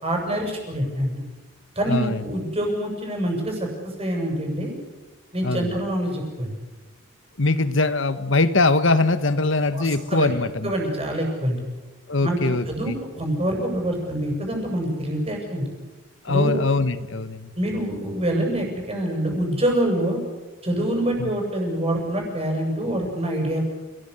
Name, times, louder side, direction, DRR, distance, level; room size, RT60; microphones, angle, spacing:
voice 1, 0.0-1.2 1.8-4.7 5.3-6.5 9.7-10.3 10.6-11.6 12.2-12.4 12.7-15.7 16.3-16.6 17.6-20.2 20.6-23.6, right 1 dB, 30° right, 2 dB, 7.4 m, -25 dB
voice 2, 1.9-2.2 5.4-5.7 7.4-10.7 12.1-13.0 16.2-17.5 21.2-21.3, left 3 dB, 65° left, 13 dB, 1.4 m, -22 dB
29.5 x 19.0 x 8.2 m, 1.2 s
head